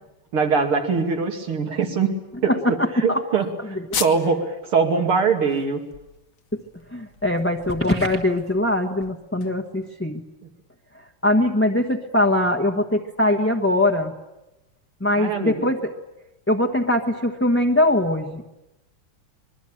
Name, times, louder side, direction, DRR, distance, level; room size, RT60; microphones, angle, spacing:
voice 1, 0.3-2.1 2.4-2.5 3.0-5.8 15.2-15.7, right 5 dB, 85° right, 4 dB, 3.5 m, -22 dB
voice 2, 2.5-3.2 3.7-4.0 6.5-6.6 6.9-10.2 11.2-14.1 15.0-15.9 16.5-18.5, left 1 dB, 10° left, 1 dB, 0.9 m, -22 dB
sound 1, 3.9-4.4 4.8-4.9 5.3-9.9, left 7 dB, 50° left, 1.2 m, -36 dB
25.5 x 21.5 x 8.8 m, 0.96 s
omnidirectional pair, 2.3 m